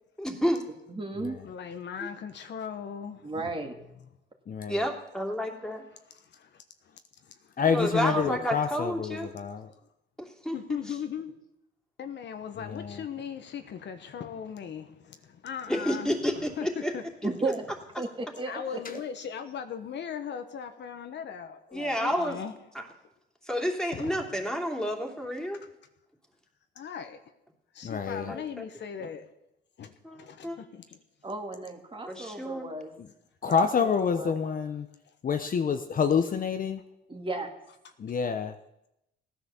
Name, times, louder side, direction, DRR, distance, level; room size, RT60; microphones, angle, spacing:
voice 1, 0.2-0.6 4.7-5.8 7.7-9.3 10.2-10.6 15.7-16.9 21.7-22.4 23.5-25.6 28.2-28.6 30.0-30.6 32.1-32.7, equal, 5° left, 3.0 m, -30 dB
voice 2, 0.9-1.4 3.2-3.7 7.6-7.9 17.2-17.7 18.0-18.8 31.2-33.0 33.4-34.3 37.1-37.5, right 2 dB, 25° right, 2.4 m, -35 dB
voice 3, 1.4-3.5 6.1-8.7 9.5-9.8 10.5-11.3 12.0-17.0 18.4-22.5 23.9-24.2 26.7-27.2 27.7-29.3 29.8-31.0 35.0-35.1 35.4-35.6, left 7 dB, 65° left, 1.3 m, -39 dB
voice 4, 4.5-4.8 7.6-9.7 12.6-13.0 27.8-28.3 33.4-34.9 35.2-36.8 38.0-38.6, left 6 dB, 45° left, 0.9 m, -27 dB
16.0 x 10.0 x 7.2 m
cardioid pair, 90°, 20 cm